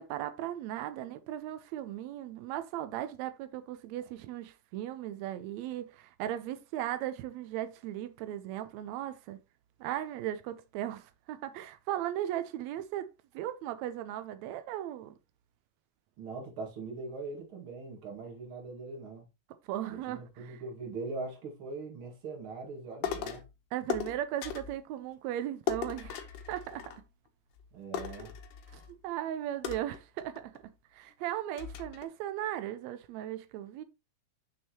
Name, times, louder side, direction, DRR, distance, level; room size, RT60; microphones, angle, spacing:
voice 1, 0.0-9.4 9.8-13.1 13.3-15.1 19.7-20.6 23.7-26.9 28.2-28.3 28.7-30.6 30.9-33.8, right 12 dB, 90° right, 1.6 m, -37 dB
voice 2, 16.2-19.2 19.9-23.4 27.7-28.3, right 3 dB, 45° right, 2.4 m, -41 dB
sound 1, 23.0-23.5 23.9-24.8 25.7-27.3 27.6-27.7 27.9-28.9 29.6-30.6 31.1-31.2 31.6-32.0, left 8 dB, 80° left, 2.4 m, -37 dB
6.4 x 6.2 x 2.9 m
omnidirectional pair, 3.7 m